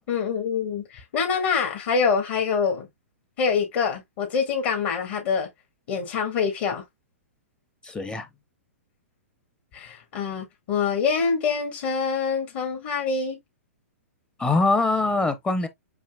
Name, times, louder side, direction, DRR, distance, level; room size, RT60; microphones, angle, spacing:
voice 1, 0.1-2.9 3.4-5.5 5.9-6.8 9.7-13.4, left 5 dB, 50° left, 1.8 m, -25 dB
voice 2, 7.8-8.3 14.4-15.7, left 3 dB, 10° left, 0.7 m, -23 dB
7.2 x 2.9 x 2.3 m
hypercardioid pair, 115°, 8 cm